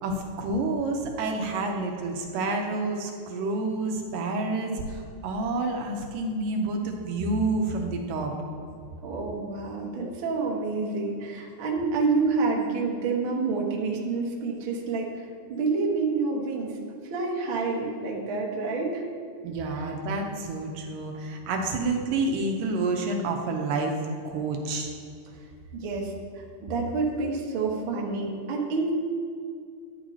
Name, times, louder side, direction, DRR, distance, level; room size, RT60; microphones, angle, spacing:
voice 1, 0.0-8.3 19.4-24.0 24.2-24.9, right 2 dB, 75° right, 2 dB, 2.4 m, -29 dB
voice 2, 9.0-16.8 17.1-19.0 19.7-19.8 25.7-26.1 26.6-28.9, right 4 dB, 55° right, -2 dB, 1.5 m, -28 dB
13.0 x 9.9 x 2.8 m, 2.3 s
omnidirectional pair, 4.0 m